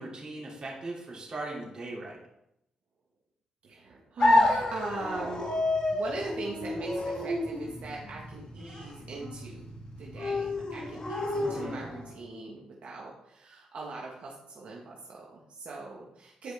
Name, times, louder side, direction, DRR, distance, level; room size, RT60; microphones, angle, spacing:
voice 1, 0.0-2.2 11.4-11.9, right 2 dB, 35° right, -4 dB, 3.0 m, -39 dB
voice 2, 3.6-5.5 5.9-9.7 10.0-16.5, right 3 dB, 65° right, -3 dB, 1.5 m, -41 dB
sound 1, 4.2-12.2, left 2 dB, 40° left, 1.5 m, -29 dB
9.9 x 5.0 x 3.6 m, 0.81 s
cardioid pair, 90°, 2 cm